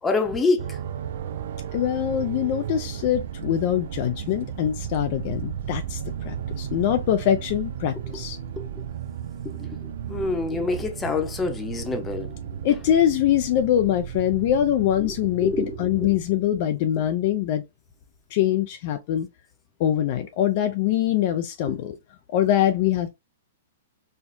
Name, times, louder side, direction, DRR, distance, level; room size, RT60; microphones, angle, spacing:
voice 1, 0.0-0.8 8.6-8.8 9.4-12.4 15.0-15.1 15.4-16.1 21.7-21.8, left 3 dB, 15° left, 0.8 m, -27 dB
sound 1, 0.6-16.6, right 9 dB, 70° right, 0.5 m, -34 dB
voice 2, 1.7-8.4 12.6-17.6 18.3-19.3 19.8-22.0 22.3-23.1, left 11 dB, 50° left, 0.4 m, -23 dB
4.3 x 2.3 x 2.6 m
hypercardioid pair, 130°, 0 cm